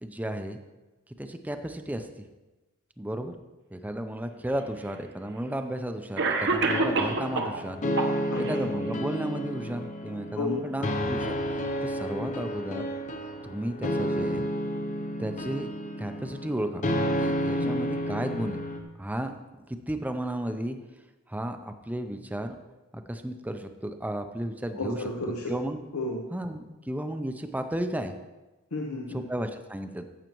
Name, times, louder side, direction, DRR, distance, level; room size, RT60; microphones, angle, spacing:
voice 1, 0.0-0.6 1.2-2.3 3.0-3.3 3.7-7.8 8.4-12.8 13.4-14.5 15.2-15.7 16.0-16.8 17.2-18.6 19.0-20.8 21.3-22.6 22.9-25.0 25.5-25.8 26.3-28.2 29.1-30.1, right 1 dB, 5° right, 7 dB, 0.5 m, -33 dB
Cough, 4.5-4.6 5.6-5.7 6.2-7.6 8.0-8.6, right 3 dB, 55° right, 0.9 m, -27 dB
sound 1, 6.6-18.8, equal, 35° left, 0.7 m, -31 dB
voice 2, 10.4-10.7 12.2-12.4 17.6-17.7 24.8-25.5 25.9-26.2 28.7-29.2, left 2 dB, 85° left, 0 dB, 0.9 m, -32 dB
14.0 x 7.3 x 3.0 m, 1.1 s
head